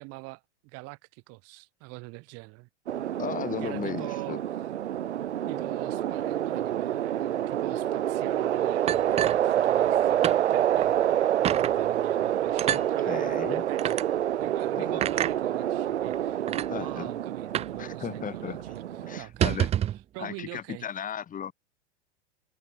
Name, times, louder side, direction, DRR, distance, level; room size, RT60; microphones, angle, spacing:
voice 1, 0.0-2.7 3.6-4.4 5.5-11.0 11.4-14.0 14.3-16.4 16.7-19.7 20.1-20.9, right 27 dB, 45° right, 3.0 m, -43 dB
sound 1, 2.9-19.2, right 11 dB, 80° right, 1.8 m, -27 dB
voice 2, 3.2-4.4 12.7-13.6 14.8-15.0 16.7-17.1 17.8-18.6 19.0-19.7 20.2-21.5, left 8 dB, 25° left, 6.4 m, -36 dB
sound 2, 8.9-10.0 10.2-10.4 10.8-10.9 11.4-11.7 12.6-12.9 13.8-14.0 15.0-15.3 16.1-16.2 16.5-16.7 17.5-17.8 18.1-18.2 18.5-18.7 19.2-20.0, right 11 dB, 20° right, 0.6 m, -28 dB
hypercardioid pair, 115°, 34 cm